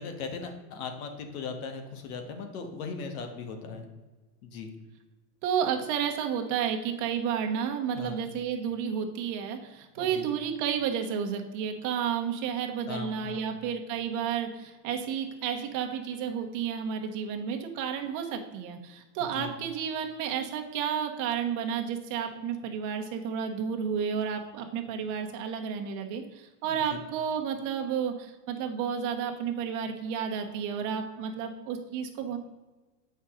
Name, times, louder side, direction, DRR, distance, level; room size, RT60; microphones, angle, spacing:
voice 1, 0.0-3.9 4.4-4.7 7.9-8.2 10.0-10.3 12.9-13.4 19.3-19.5 26.6-27.0, left 5 dB, 65° left, 5 dB, 1.6 m, -38 dB
voice 2, 5.4-32.4, right 7 dB, 40° right, 4 dB, 1.2 m, -31 dB
7.8 x 5.6 x 3.8 m, 1.2 s
supercardioid pair, 135°, 47 cm